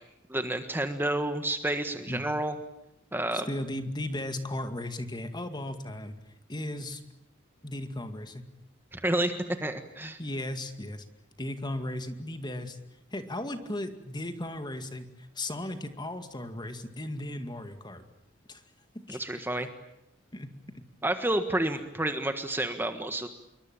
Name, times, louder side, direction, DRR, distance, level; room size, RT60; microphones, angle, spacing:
voice 1, 0.3-2.6 3.1-3.5 8.9-9.3 9.6-10.2 19.1-19.7 21.0-23.3, right 1 dB, 10° right, 8 dB, 1.5 m, -30 dB
voice 2, 3.3-6.2 6.5-7.0 7.6-8.4 10.2-11.0 11.4-12.8 13.1-18.0 18.5-18.6 18.9-19.2 20.3-20.5, left 1 dB, 20° left, 8 dB, 2.2 m, -36 dB
27.0 x 23.5 x 9.0 m, 0.83 s
head